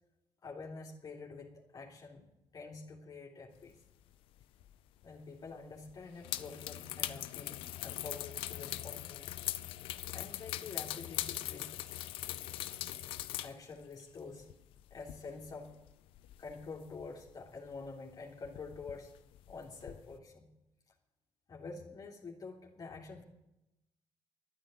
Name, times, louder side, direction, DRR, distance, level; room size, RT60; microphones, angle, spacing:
voice 1, 0.4-3.8 5.0-9.3 10.1-11.9 13.4-14.5 14.9-15.8 16.4-19.1 19.5-20.5 21.5-23.2, left 4 dB, 45° left, 0 dB, 2.6 m, -47 dB
sound 1, 4.4-4.7 5.0-5.1 5.9-13.6 13.8-17.3 17.7-17.9 18.2-20.1, left 14 dB, 85° left, 0.7 m, -41 dB
12.5 x 9.3 x 9.1 m, 0.89 s
cardioid pair, 85°, 9 cm